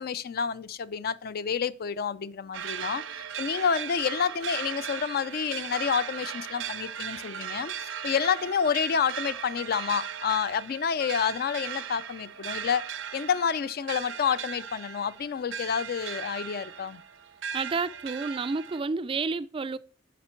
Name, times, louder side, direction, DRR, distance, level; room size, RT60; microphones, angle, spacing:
voice 1, 0.0-17.0, left 7 dB, 55° left, 0.4 m, -29 dB
sound 1, 2.5-18.8, right 8 dB, 85° right, 0.6 m, -38 dB
voice 2, 17.5-19.8, right 4 dB, 30° right, 0.3 m, -30 dB
10.0 x 5.1 x 4.4 m
head